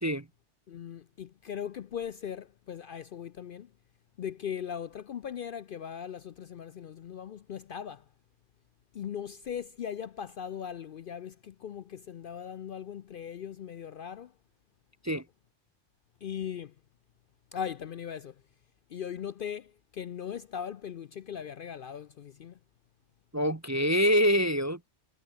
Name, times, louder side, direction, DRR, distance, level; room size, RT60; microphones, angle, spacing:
voice 1, 0.7-3.7 4.2-8.1 8.9-14.3 16.2-16.7 17.5-18.4 18.9-22.6, left 8 dB, 55° left, 0.6 m, -39 dB
voice 2, 23.3-24.9, equal, 20° right, 0.6 m, -25 dB
omnidirectional pair, 1.2 m